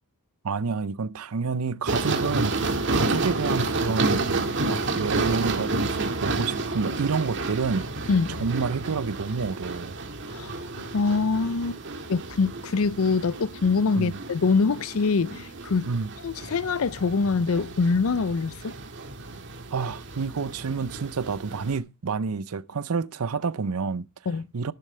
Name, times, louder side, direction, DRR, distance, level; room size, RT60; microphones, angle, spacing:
voice 1, 0.4-4.2 4.6-7.9 8.4-10.0 14.0-14.2 15.9-16.1 19.7-24.1 24.5-24.7, right 5 dB, 80° right, 0.6 m, -29 dB
sound 1, 1.9-21.8, right 3 dB, 55° right, 1.9 m, -30 dB
voice 2, 8.1-8.4 10.3-10.7 10.9-11.8 12.1-15.9 16.2-18.7 24.3-24.5, left 4 dB, 70° left, 0.5 m, -24 dB
11.5 x 11.0 x 3.2 m
head